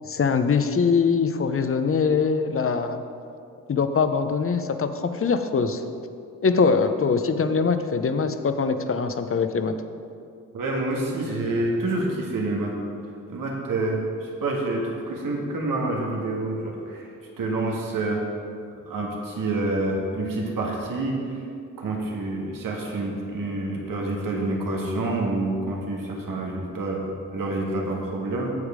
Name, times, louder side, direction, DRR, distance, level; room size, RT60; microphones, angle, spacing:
voice 1, 0.1-3.0 3.7-5.8 6.4-9.7, left 5 dB, 40° left, 9 dB, 0.7 m, -22 dB
voice 2, 10.5-12.7 13.3-17.1 17.4-18.2 18.7-21.4 21.8-28.5, right 2 dB, 85° right, -1 dB, 1.6 m, -27 dB
8.2 x 7.2 x 4.9 m, 2.4 s
cardioid pair, 60°, 32 cm